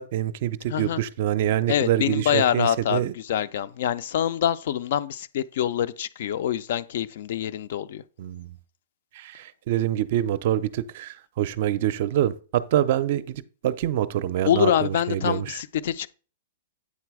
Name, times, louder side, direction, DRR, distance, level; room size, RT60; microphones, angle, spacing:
voice 1, 0.0-3.1 8.2-8.6 9.1-15.6, right 12 dB, 50° right, 0.5 m, -26 dB
voice 2, 1.7-8.0 14.4-16.1, left 10 dB, 55° left, 0.4 m, -25 dB
8.5 x 3.9 x 4.7 m
hypercardioid pair, 165°, 0 cm